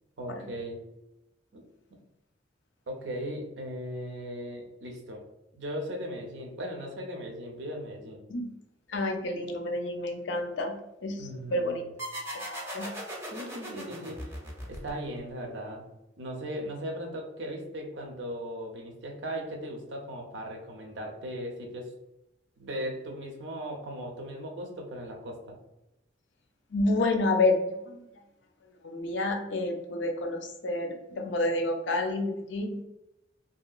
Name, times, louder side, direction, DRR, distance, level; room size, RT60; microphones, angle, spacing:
voice 1, 0.2-0.8 1.5-1.6 2.9-5.2 5.6-8.3 11.2-11.9 13.2-14.3 14.7-15.9 16.2-21.9 22.6-25.6, equal, 70° right, 2 dB, 0.6 m, -38 dB
voice 2, 8.9-10.7 11.0-11.8 12.5-12.9 26.7-28.0 28.8-32.8, left 2 dB, 70° left, 4 dB, 0.5 m, -29 dB
sound 1, 12.0-15.3, equal, 15° right, 0.6 m, -38 dB
2.9 x 2.7 x 2.3 m, 0.90 s
head